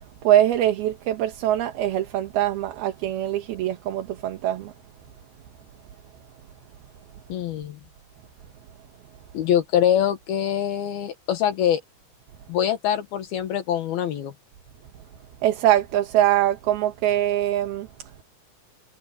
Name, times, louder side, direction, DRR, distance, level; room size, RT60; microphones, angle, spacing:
voice 1, 0.2-4.7 15.4-18.1, right 12 dB, 75° right, 3.4 m, -23 dB
voice 2, 7.3-7.8 9.3-11.8 12.5-14.3, left 10 dB, 70° left, 3.3 m, -24 dB
omnidirectional pair, 4.6 m